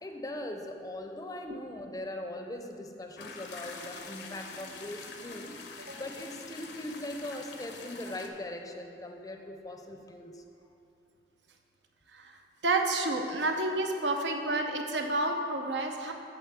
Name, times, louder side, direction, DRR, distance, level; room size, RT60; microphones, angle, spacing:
voice 1, 0.0-5.6 5.9-10.4, left 1 dB, 20° left, 4 dB, 0.5 m, -40 dB
sound 1, 3.2-8.3, left 4 dB, 75° left, 0.7 m, -45 dB
voice 2, 12.6-16.1, right 2 dB, 85° right, 4 dB, 0.7 m, -30 dB
8.1 x 4.1 x 6.8 m, 2.6 s
head